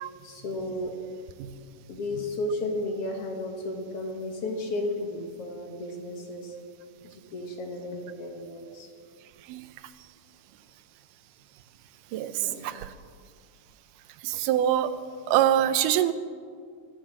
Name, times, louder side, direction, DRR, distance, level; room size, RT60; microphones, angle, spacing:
voice 1, 0.2-0.9 1.9-6.6 7.0-8.9 12.4-12.7, left 1 dB, 55° left, 2 dB, 2.1 m, -33 dB
voice 2, 14.2-14.9 15.3-16.1, right 11 dB, 85° right, 12 dB, 2.3 m, -24 dB
23.0 x 7.8 x 7.4 m, 2.1 s
omnidirectional pair, 3.7 m